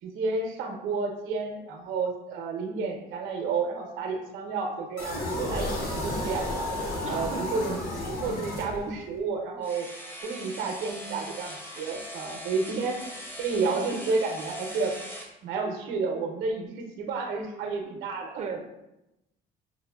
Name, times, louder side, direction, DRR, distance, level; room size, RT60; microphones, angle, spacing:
voice 1, 0.0-6.7 7.0-7.8 8.1-9.9 10.2-13.1 13.4-14.9 15.4-18.3, right 4 dB, 85° right, 3 dB, 0.6 m, -31 dB
sound 1, 5.0-9.2, left 1 dB, 55° left, 1.0 m, -32 dB
voice 2, 7.0-7.6 18.4-18.6, right 6 dB, 35° right, 4 dB, 0.4 m, -36 dB
sound 2, 9.6-15.3, equal, 10° left, 0.6 m, -41 dB
5.9 x 2.1 x 2.3 m, 0.91 s
cardioid pair, 90°, 19 cm